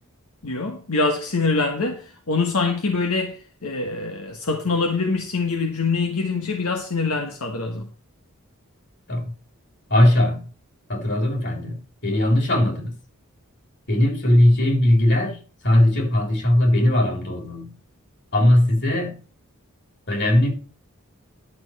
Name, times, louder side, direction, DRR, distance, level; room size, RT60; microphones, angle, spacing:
voice 1, 0.4-7.9, left 3 dB, 80° left, 1.4 m, -24 dB
voice 2, 9.9-10.5 10.9-12.9 13.9-17.8 18.3-19.2 20.1-20.5, left 1 dB, 55° left, 4.1 m, -19 dB
11.5 x 6.6 x 4.9 m
head